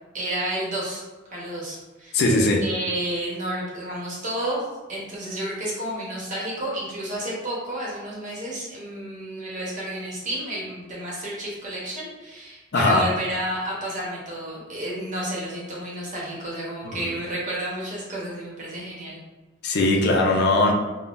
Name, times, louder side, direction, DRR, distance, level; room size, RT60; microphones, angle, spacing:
voice 1, 0.1-1.0 1.3-2.2 2.6-4.6 4.9-19.2, right 1 dB, 40° right, -5 dB, 0.9 m, -31 dB
voice 2, 2.1-2.6 12.7-13.1 16.8-17.1 19.6-20.7, left 2 dB, 60° left, 0 dB, 0.4 m, -20 dB
3.5 x 2.1 x 2.4 m, 1.2 s
head